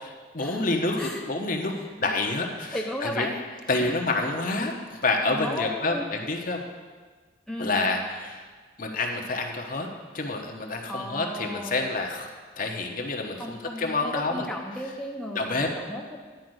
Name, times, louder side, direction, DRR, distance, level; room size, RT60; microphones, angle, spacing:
voice 1, 0.0-1.7 2.0-2.8 3.0-3.3 3.7-6.6 7.6-8.4 8.8-9.9 10.1-12.3 12.6-14.5 15.3-15.7, left 2 dB, 45° left, 2 dB, 1.1 m, -28 dB
voice 2, 2.7-3.3 5.3-6.1 7.5-7.8 10.9-11.9 13.4-16.2, left 1 dB, 5° left, -1 dB, 0.7 m, -34 dB
10.5 x 5.0 x 7.9 m, 1.5 s
head